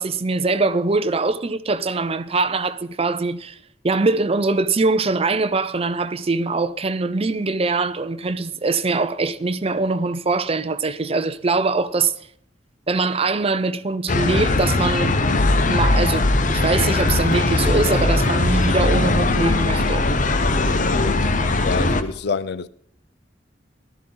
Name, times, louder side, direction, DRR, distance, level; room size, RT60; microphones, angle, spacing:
voice 1, 0.0-3.6 3.8-12.1 12.9-15.2 15.6-20.1, right 3 dB, 35° right, 0.6 m, -22 dB
sound 1, 14.1-22.0, left 2 dB, 45° left, 0.8 m, -19 dB
voice 2, 21.6-22.7, left 5 dB, 65° left, 0.5 m, -26 dB
14.5 x 12.5 x 3.9 m
head